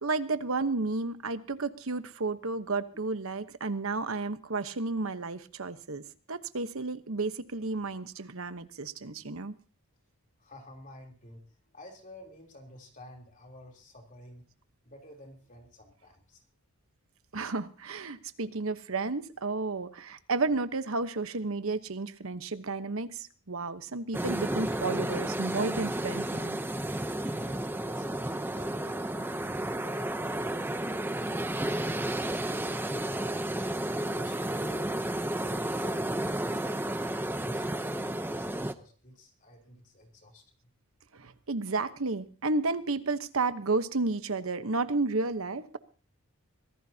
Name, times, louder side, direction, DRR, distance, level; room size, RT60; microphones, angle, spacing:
voice 1, 0.0-9.5 17.3-26.6 33.3-33.4 41.1-45.8, right 3 dB, 70° right, 11 dB, 1.1 m, -32 dB
voice 2, 10.4-14.5 14.8-16.4 27.2-31.0 31.6-33.6 34.0-34.9 35.4-37.0 37.4-40.7, left 1 dB, 35° left, 2 dB, 3.5 m, -51 dB
sound 1, 24.1-38.7, right 1 dB, 10° right, 0.7 m, -32 dB
24.5 x 16.5 x 2.8 m, 0.38 s
head